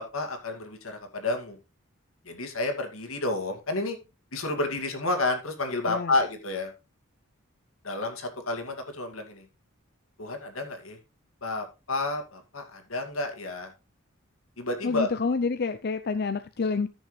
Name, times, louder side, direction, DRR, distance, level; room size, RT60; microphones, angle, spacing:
voice 1, 0.0-1.6 2.3-4.0 4.3-6.7 7.8-9.4 10.2-11.0 11.4-13.7 14.6-15.1, left 2 dB, 80° left, 2.2 m, -30 dB
voice 2, 14.8-16.9, left 4 dB, 50° left, 0.5 m, -28 dB
14.0 x 6.3 x 3.2 m
head